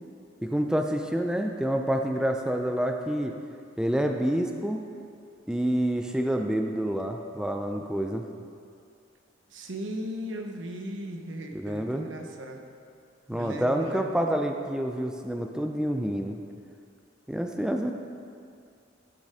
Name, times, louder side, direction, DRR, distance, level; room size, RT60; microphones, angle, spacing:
voice 1, 0.4-3.4 3.8-4.8 5.5-8.3 11.5-12.1 13.3-16.4 17.3-17.9, right 1 dB, 5° right, 3 dB, 0.4 m, -28 dB
voice 2, 9.5-12.6 13.3-14.1, equal, 80° right, 3 dB, 1.0 m, -37 dB
11.5 x 6.6 x 4.9 m, 2.4 s
head